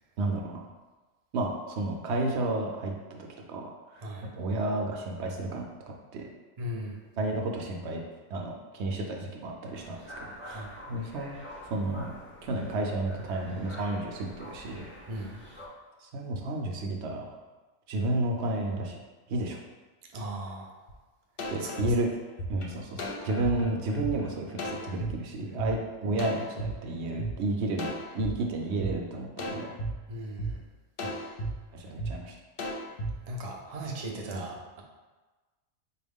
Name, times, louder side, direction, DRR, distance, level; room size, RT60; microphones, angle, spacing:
voice 1, 0.2-0.5 1.3-4.1 4.3-5.6 6.1-6.3 7.2-8.0 8.3-10.1 10.4-14.9 16.0-17.3 17.9-19.0 19.3-19.6 21.5-22.1 22.5-27.9 28.1-29.7 31.0-31.1 31.7-32.3 34.3-34.4, right 2 dB, 70° right, 1 dB, 0.8 m, -32 dB
voice 2, 6.6-7.0 10.5-10.7 15.1-15.4 20.1-20.8 21.6-21.7 25.4-25.6 30.1-30.6 33.2-34.8, right 1 dB, 50° right, 0 dB, 0.4 m, -38 dB
sound 1, 9.7-15.7, equal, 20° left, 0.3 m, -46 dB
sound 2, 20.9-21.0 21.4-25.1 25.6-25.7 26.2-27.3 27.8-28.3 28.8-28.9 29.4-29.9 30.4-30.5 31.0-31.5 32.0-32.1 32.6-33.1, right 1 dB, 55° left, 0.8 m, -34 dB
4.4 x 2.3 x 3.5 m, 1.2 s
omnidirectional pair, 1.2 m